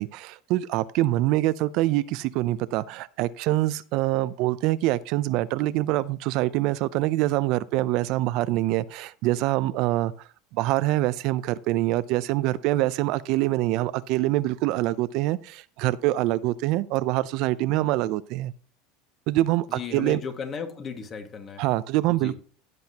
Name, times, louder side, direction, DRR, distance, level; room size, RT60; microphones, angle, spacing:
voice 1, 0.0-10.1 10.5-18.5 19.3-20.2 21.6-22.4, right 16 dB, 60° right, 0.5 m, -25 dB
voice 2, 19.7-21.6 22.1-22.4, left 6 dB, 30° left, 1.8 m, -35 dB
16.0 x 7.7 x 2.9 m
supercardioid pair, 130°, 0 cm